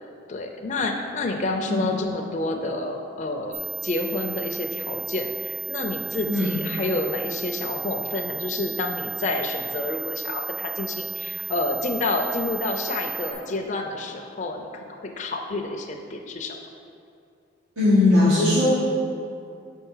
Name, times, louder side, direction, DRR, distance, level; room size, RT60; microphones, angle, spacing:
voice 1, 0.3-16.6, left 2 dB, 35° left, 2 dB, 0.4 m, -29 dB
sound 1, 3.5-13.3, right 9 dB, 50° right, 1.0 m, -33 dB
voice 2, 17.8-18.7, left 2 dB, 90° right, -12 dB, 1.6 m, -18 dB
5.9 x 4.5 x 5.5 m, 2.5 s
head